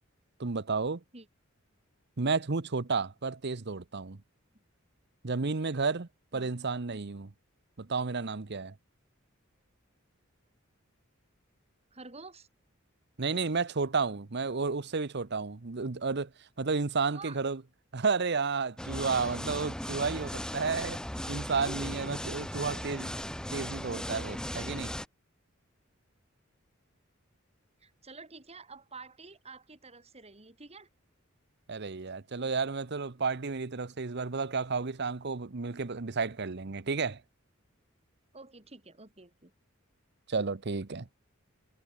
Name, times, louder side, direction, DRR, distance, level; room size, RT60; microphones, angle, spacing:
voice 1, 0.4-1.0 2.2-4.2 5.2-7.3 7.8-8.7 13.2-16.3 16.6-17.6 17.9-21.0 21.3-23.1 23.5-24.9 31.7-37.2 40.3-41.1, right 4 dB, 55° right, 0.9 m, -32 dB
voice 2, 11.9-12.5 17.1-17.4 27.8-30.9 38.3-39.5, right 4 dB, 30° right, 3.9 m, -49 dB
sound 1, 18.8-25.1, equal, 5° left, 1.7 m, -37 dB
head